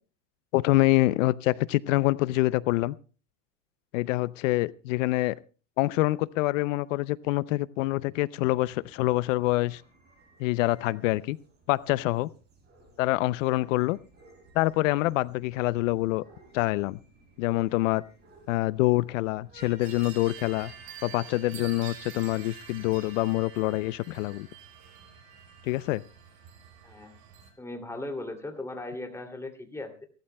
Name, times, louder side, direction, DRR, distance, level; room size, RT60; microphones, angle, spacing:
voice 1, 0.5-3.0 3.9-5.4 5.8-9.8 10.4-11.4 11.7-12.3 13.0-14.0 14.5-16.2 16.5-17.0 17.4-18.0 18.5-20.7 21.0-24.5 25.6-26.0, left 18 dB, 90° left, 19 dB, 0.6 m, -26 dB
sound 1, 8.7-21.0, right 3 dB, 25° right, 7.5 m, -57 dB
sound 2, 19.8-27.5, right 7 dB, 60° right, 6.7 m, -47 dB
voice 2, 26.8-27.1 27.6-30.1, left 2 dB, 5° left, 5 dB, 2.6 m, -38 dB
29.5 x 13.0 x 2.2 m, 0.36 s
supercardioid pair, 135°, 37 cm